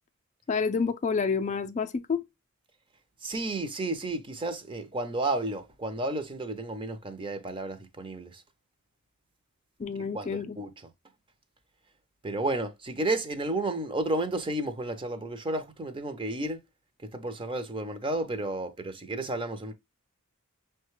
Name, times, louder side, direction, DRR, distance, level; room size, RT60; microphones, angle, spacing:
voice 1, 0.5-2.2 9.8-10.6, left 5 dB, 35° left, 0.3 m, -28 dB
voice 2, 3.2-8.4 10.1-10.7 12.2-16.6 17.1-19.7, right 2 dB, 25° right, 0.6 m, -32 dB
6.2 x 2.2 x 3.0 m
head